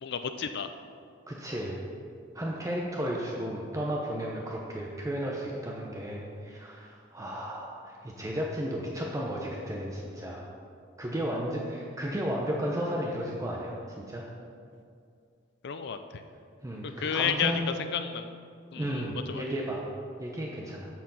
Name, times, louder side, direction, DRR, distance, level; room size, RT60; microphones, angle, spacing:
voice 1, 0.0-0.7 15.6-16.2 16.8-18.3 18.7-19.4, left 7 dB, 60° left, 8 dB, 0.5 m, -32 dB
voice 2, 1.3-1.8 2.3-10.5 11.0-13.7 14.1-14.2 16.6-17.7 18.7-19.8 20.2-20.9, equal, 15° right, -2 dB, 0.8 m, -33 dB
14.0 x 4.6 x 5.5 m, 2.3 s
head